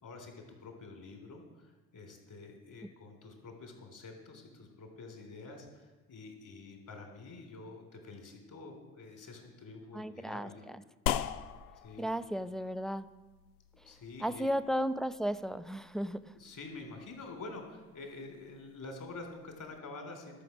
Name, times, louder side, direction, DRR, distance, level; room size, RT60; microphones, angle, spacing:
voice 1, 0.0-10.6 11.8-12.1 13.7-14.5 16.3-20.4, left 3 dB, 45° left, 3 dB, 3.5 m, -48 dB
voice 2, 9.9-10.8 12.0-13.1 14.2-16.3, equal, ahead, 12 dB, 0.4 m, -34 dB
sound 1, 11.1-19.8, left 10 dB, 90° left, 0.6 m, -42 dB
12.5 x 5.9 x 7.1 m, 1.3 s
hypercardioid pair, 60°, 43 cm